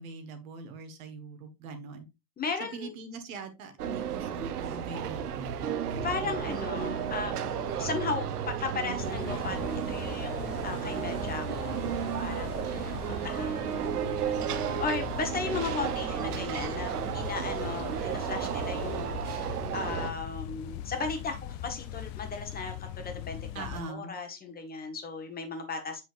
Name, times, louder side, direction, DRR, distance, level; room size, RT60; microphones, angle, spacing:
voice 1, 0.0-2.1 2.7-5.7 6.2-6.4 23.5-24.1, right 3 dB, 65° right, 7 dB, 1.7 m, -42 dB
voice 2, 2.4-2.9 6.0-13.0 13.2-26.0, left 4 dB, 20° left, 5 dB, 1.4 m, -36 dB
sound 1, 3.8-20.1, right 9 dB, 80° right, 0.9 m, -33 dB
sound 2, 9.0-23.8, left 11 dB, 40° left, 0.6 m, -40 dB
7.3 x 5.7 x 2.5 m, 0.24 s
hypercardioid pair, 110°, 45 cm